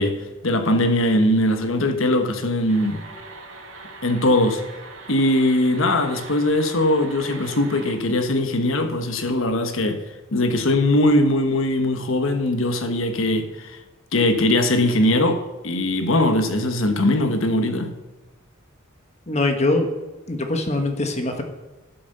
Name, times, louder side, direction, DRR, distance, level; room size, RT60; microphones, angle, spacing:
voice 1, 0.0-3.0 4.0-4.6 5.1-10.0 10.3-13.8 14.1-17.9, left 1 dB, 65° left, 1.2 m, -20 dB
sound 1, 2.7-8.0, right 3 dB, 70° right, 2.6 m, -41 dB
voice 2, 19.3-19.9 20.3-21.4, left 2 dB, 30° left, 1.3 m, -22 dB
12.0 x 8.5 x 6.7 m
head